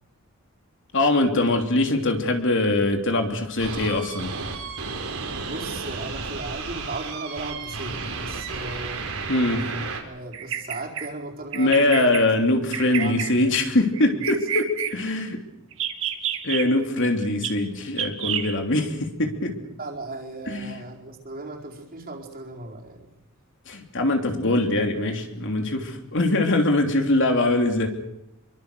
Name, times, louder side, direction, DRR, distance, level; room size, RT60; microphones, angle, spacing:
voice 1, 0.9-4.3 9.3-9.7 11.5-15.4 16.4-19.5 20.5-20.7 23.7-27.9, left 2 dB, 60° left, 5 dB, 3.1 m, -22 dB
sound 1, 3.6-10.0, right 4 dB, 80° right, 4.7 m, -33 dB
voice 2, 5.3-9.1 9.7-9.8 10.0-12.1 12.5-12.7 13.0-13.6 14.1-14.2 19.8-23.1, right 2 dB, 45° right, 0 dB, 4.6 m, -36 dB
Bird vocalization bird call bird song, 10.3-11.1 11.5-12.2 12.7-13.3 13.9-14.9 15.7-16.6 17.4-17.5 18.0-18.5, right 10 dB, 65° right, 2.3 m, -28 dB
26.5 x 23.5 x 6.8 m, 0.84 s
head